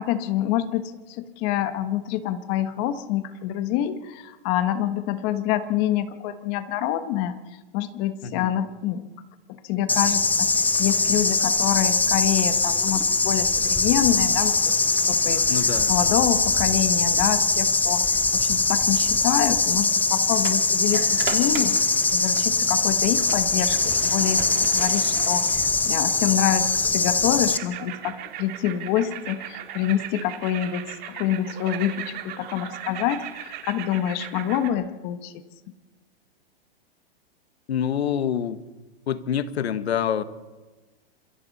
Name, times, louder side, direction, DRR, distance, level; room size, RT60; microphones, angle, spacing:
voice 1, 0.0-7.4 7.7-9.0 9.5-14.6 15.1-18.0 18.3-35.3, left 11 dB, 35° left, 10 dB, 1.4 m, -26 dB
sound 1, 9.9-27.6, left 3 dB, 5° left, 0.6 m, -22 dB
voice 2, 15.5-15.9 37.7-38.6 39.1-40.2, left 8 dB, 90° left, 12 dB, 1.5 m, -26 dB
sound 2, 18.5-18.6 20.4-22.5 23.0-26.2, right 10 dB, 60° right, 3.2 m, -37 dB
sound 3, 27.5-34.7, right 11 dB, 30° right, 2.0 m, -37 dB
27.5 x 22.5 x 4.2 m, 1.2 s
hypercardioid pair, 145°, 31 cm